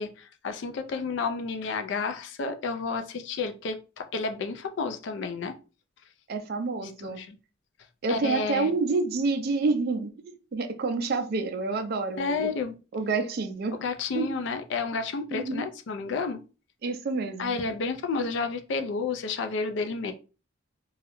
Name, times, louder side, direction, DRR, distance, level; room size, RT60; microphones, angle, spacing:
voice 1, 0.0-5.5 6.8-7.4 8.1-8.7 12.2-12.7 13.7-16.4 17.4-20.1, left 4 dB, 60° left, 0.3 m, -31 dB
voice 2, 6.3-7.2 8.0-12.5 12.9-13.8 14.1-14.3 15.3-15.6 16.8-17.6, right 3 dB, 50° right, 0.4 m, -28 dB
2.3 x 2.0 x 2.9 m
head